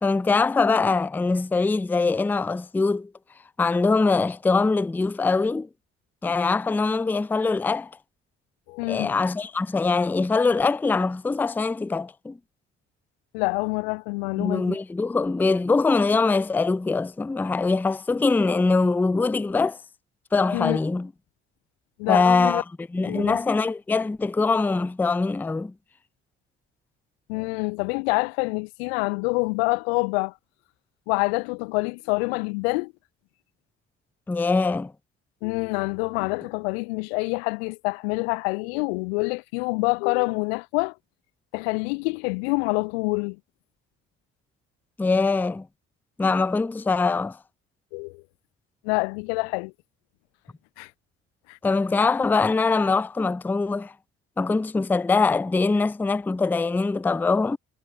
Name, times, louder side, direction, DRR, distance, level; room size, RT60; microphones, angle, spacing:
voice 1, 0.0-3.1 3.6-5.7 6.2-7.9 8.9-12.4 14.4-19.8 20.3-21.1 22.1-22.6 22.9-25.7 34.3-34.9 45.0-45.7 46.2-47.4 51.6-53.9 54.4-57.6, left 4 dB, 5° left, 0.4 m, -23 dB
voice 2, 8.7-9.1 13.3-14.8 20.5-20.8 22.0-22.6 23.0-23.4 27.3-30.3 31.1-32.9 35.4-40.9 41.5-43.4 47.9-48.2 48.8-49.7 50.8-50.9 51.5-51.6, left 33 dB, 65° left, 0.6 m, -26 dB
figure-of-eight pair, 45°, 34 cm